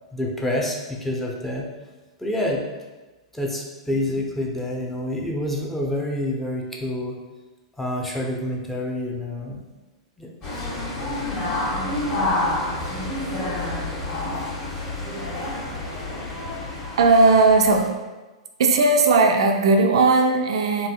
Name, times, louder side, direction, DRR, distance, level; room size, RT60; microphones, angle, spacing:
voice 1, 0.1-1.7 2.2-2.6 3.3-7.2 7.8-9.6 10.2-10.3, left 1 dB, 5° left, -1 dB, 0.5 m, -27 dB
sound 1, 10.4-17.9, left 2 dB, 35° left, 1.4 m, -28 dB
voice 2, 17.0-17.9 18.6-20.9, right 3 dB, 65° right, 3 dB, 0.4 m, -17 dB
4.1 x 2.6 x 2.2 m, 1.2 s
figure-of-eight pair, 100°, 3 cm